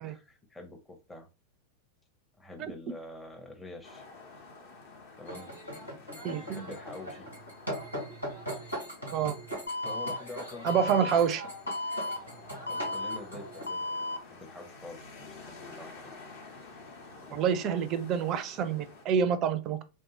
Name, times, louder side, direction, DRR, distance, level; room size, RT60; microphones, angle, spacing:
voice 1, 0.1-1.3 2.4-4.1 5.2-5.5 6.4-7.3 9.8-11.1 12.7-16.1, left 2 dB, 10° left, 0.6 m, -46 dB
sound 1, 3.8-19.0, left 3 dB, 55° left, 1.0 m, -51 dB
sound 2, 5.3-13.7, right 1 dB, 90° left, 1.7 m, -40 dB
voice 2, 6.2-6.6 9.1-9.4 10.6-11.4 17.3-19.8, right 7 dB, 35° right, 0.4 m, -28 dB
Alarm, 9.7-10.2 10.7-11.2 11.7-12.2 12.7-13.2 13.7-14.2, left 2 dB, 75° left, 0.4 m, -33 dB
3.4 x 2.7 x 2.8 m
figure-of-eight pair, 90°, 0 cm